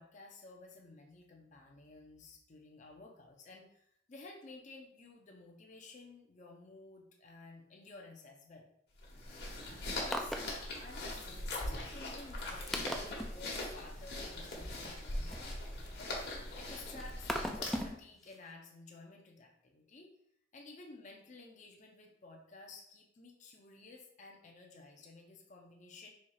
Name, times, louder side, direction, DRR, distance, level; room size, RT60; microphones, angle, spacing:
voice 1, 0.0-8.7 10.0-20.1 20.5-26.1, left 3 dB, 40° left, 1 dB, 0.6 m, -54 dB
sound 1, 9.0-18.0, left 1 dB, 60° left, 1.3 m, -41 dB
sound 2, 10.1-10.5 11.0-11.1 11.7-11.8 12.3-12.4 12.7-13.3 14.5-16.1 16.6-18.0 18.3-18.4, equal, ahead, 0.3 m, -39 dB
4.2 x 2.4 x 4.7 m, 0.71 s
head